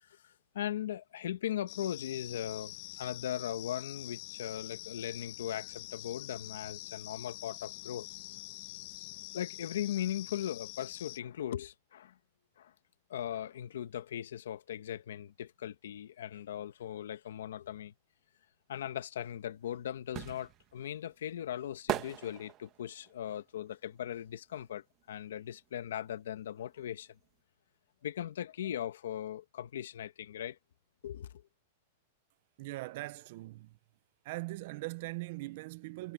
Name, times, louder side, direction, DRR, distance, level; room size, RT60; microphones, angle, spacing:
voice 1, 0.0-8.1 9.3-12.2 12.6-12.7 13.1-17.9 18.7-27.1 28.0-30.6 31.0-31.4, left 11 dB, 80° left, 1.3 m, -39 dB
sound 1, 1.7-11.2, left 18 dB, 40° left, 1.1 m, -46 dB
sound 2, 19.3-25.1 25.4-27.0 27.2-27.3, right 13 dB, 25° right, 1.2 m, -41 dB
voice 2, 32.6-33.7 34.2-36.1, right 21 dB, 40° right, 0.5 m, -41 dB
supercardioid pair, 175°, 0 cm